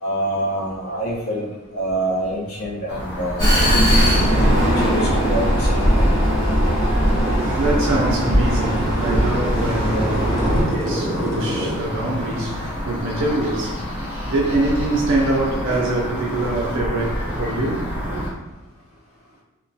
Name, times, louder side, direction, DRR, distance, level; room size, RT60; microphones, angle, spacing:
voice 1, 0.0-3.5 4.3-6.1 10.2-10.7, right 1 dB, 75° left, 0.7 m, -26 dB
sound 1, 2.9-18.3, equal, 50° left, 1.0 m, -28 dB
Vehicle, 3.4-10.6, equal, 15° left, 1.2 m, -19 dB
sound 2, 5.9-11.7, equal, ahead, 0.4 m, -30 dB
voice 2, 6.7-18.2, right 2 dB, 60° right, 0.4 m, -24 dB
2.9 x 2.1 x 2.6 m
head